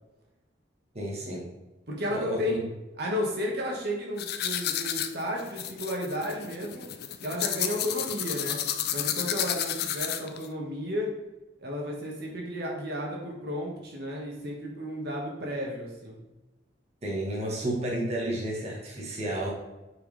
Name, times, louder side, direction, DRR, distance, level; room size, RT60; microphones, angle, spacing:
voice 1, 0.9-1.5 2.1-2.6 17.0-19.5, right 1 dB, 35° right, -4 dB, 1.4 m, -31 dB
voice 2, 1.9-2.6 3.0-6.8 7.2-8.6 8.9-11.1 11.6-16.2, equal, 60° right, -1 dB, 1.6 m, -33 dB
sound 1, 4.2-10.5, left 10 dB, 55° left, 0.5 m, -31 dB
8.7 x 4.8 x 3.4 m, 1.0 s
head